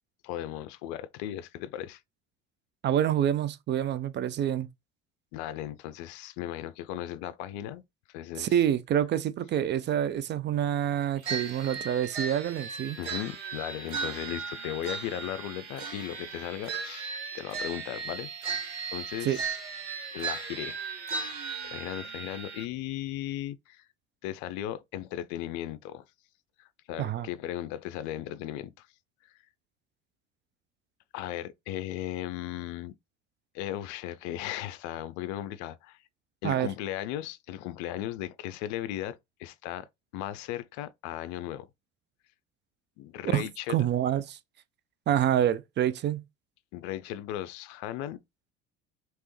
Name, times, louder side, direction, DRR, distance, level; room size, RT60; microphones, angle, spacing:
voice 1, 0.2-2.0 5.3-7.8 8.1-8.5 13.0-19.6 20.1-20.8 21.1-21.4 21.6-23.9 24.2-26.0 26.6-28.9 29.3-29.4 31.1-32.9 33.5-36.0 36.4-39.9 40.1-41.7 43.0-43.8 46.7-48.2, left 12 dB, 60° left, 0.5 m, -37 dB
voice 2, 2.8-4.7 8.4-13.0 19.2-19.4 27.0-27.3 36.4-36.7 43.2-44.4 45.1-46.2, right 10 dB, 35° right, 0.4 m, -27 dB
sound 1, 11.2-22.6, right 5 dB, 80° right, 1.1 m, -36 dB
3.3 x 3.0 x 3.1 m
hypercardioid pair, 65°, 33 cm